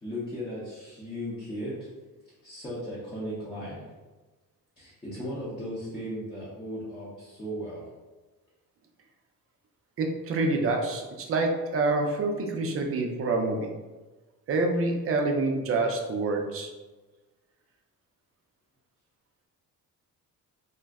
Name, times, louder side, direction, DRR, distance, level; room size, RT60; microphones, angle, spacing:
voice 1, 0.0-1.9 2.4-4.0 4.8-7.9, equal, 15° left, -10 dB, 0.6 m, -36 dB
voice 2, 10.0-13.7 14.5-16.7, right 3 dB, 40° right, 3 dB, 0.4 m, -27 dB
2.5 x 2.1 x 3.4 m, 1.2 s
cardioid pair, 140°, 35 cm